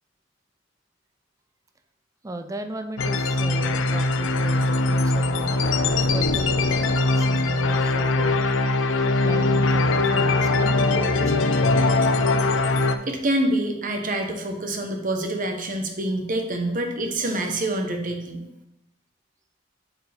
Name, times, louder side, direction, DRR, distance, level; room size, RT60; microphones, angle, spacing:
voice 1, 2.2-5.7 6.1-8.4 9.2-11.6, right 2 dB, 15° right, 7 dB, 0.5 m, -36 dB
sound 1, 3.0-13.0, left 2 dB, 75° left, 0.5 m, -21 dB
voice 2, 13.0-18.5, right 1 dB, 45° right, 3 dB, 1.0 m, -26 dB
8.1 x 4.6 x 3.5 m, 0.85 s
head